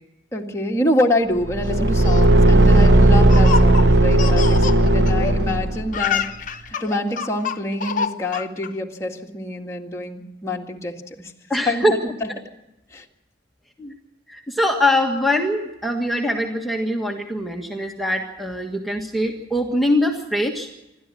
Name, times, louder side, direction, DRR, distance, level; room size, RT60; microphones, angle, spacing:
voice 1, 0.3-6.2 6.8-11.3 11.7-12.0 12.9-13.0, left 1 dB, 15° left, 0 dB, 2.0 m, -26 dB
Car / Engine, 1.4-6.0, right 1 dB, 70° right, 0.9 m, -15 dB
Laughter, 1.8-5.6 5.8-8.7, left 6 dB, 50° left, 1.0 m, -27 dB
voice 2, 11.5-11.9 13.8-13.9 14.3-20.7, left 1 dB, ahead, 2 dB, 1.6 m, -22 dB
27.5 x 13.0 x 7.7 m, 0.93 s
head